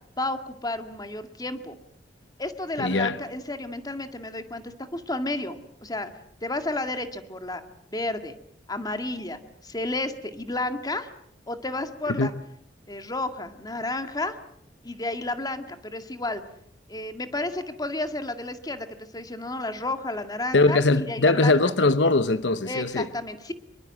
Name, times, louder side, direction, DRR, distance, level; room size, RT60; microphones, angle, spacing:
voice 1, 0.2-1.8 2.4-6.1 6.4-7.6 7.9-8.3 8.7-11.1 11.5-12.3 12.9-14.4 14.8-16.4 16.9-21.6 22.7-23.5, left 2 dB, 20° left, 2.0 m, -31 dB
voice 2, 2.8-3.2 12.1-12.3 20.5-23.1, left 3 dB, 75° left, 0.9 m, -21 dB
25.5 x 23.0 x 7.5 m
head